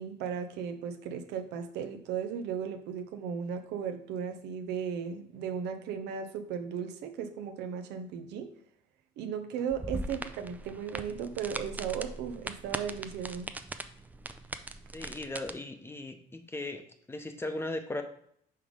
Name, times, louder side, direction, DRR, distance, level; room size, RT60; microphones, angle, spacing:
voice 1, 0.0-8.5 9.2-13.5, right 7 dB, 85° right, 6 dB, 0.7 m, -36 dB
sound 1, 9.7-15.5, right 2 dB, 10° right, 0.4 m, -40 dB
voice 2, 14.9-16.8 17.1-18.0, left 2 dB, 15° left, 6 dB, 0.8 m, -37 dB
5.6 x 3.4 x 5.0 m, 0.67 s
cardioid pair, 110°, 17 cm